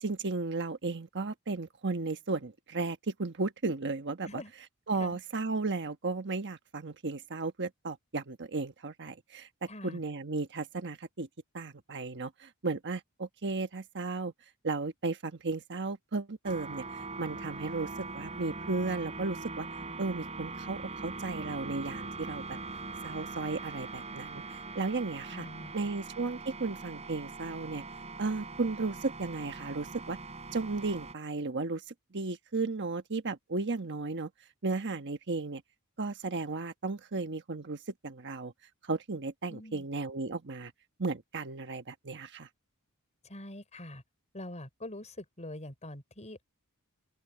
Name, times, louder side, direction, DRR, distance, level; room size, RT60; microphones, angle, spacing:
voice 1, 0.0-4.4 4.9-11.3 11.5-14.3 14.6-19.7 20.0-22.6 23.0-25.5 25.7-27.8 28.2-30.2 30.5-31.8 32.1-34.3 34.6-35.6 36.0-38.5 38.8-40.7 41.0-42.5, right 3 dB, 55° right, 1.3 m, -34 dB
voice 2, 9.7-10.0 25.3-25.7 39.5-39.8 43.2-44.0 44.3-46.4, left 1 dB, 30° left, 5.9 m, -44 dB
sound 1, 16.4-31.1, right 3 dB, 30° right, 3.8 m, -42 dB
open air
head